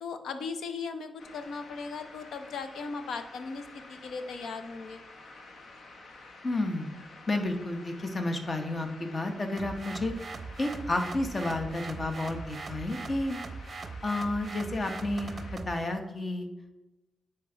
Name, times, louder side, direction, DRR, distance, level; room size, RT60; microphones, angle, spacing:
voice 1, 0.0-5.0, left 4 dB, 85° left, 8 dB, 0.7 m, -38 dB
sound 1, 1.2-15.6, left 3 dB, 65° left, 1.0 m, -50 dB
voice 2, 6.4-6.9 7.3-10.1 10.6-13.4 14.0-15.4 15.6-16.5, left 2 dB, 35° left, 6 dB, 1.0 m, -31 dB
sound 2, 9.6-15.8, right 4 dB, 40° right, 0.6 m, -41 dB
9.4 x 4.5 x 3.9 m, 1.0 s
cardioid pair, 100°, 0 cm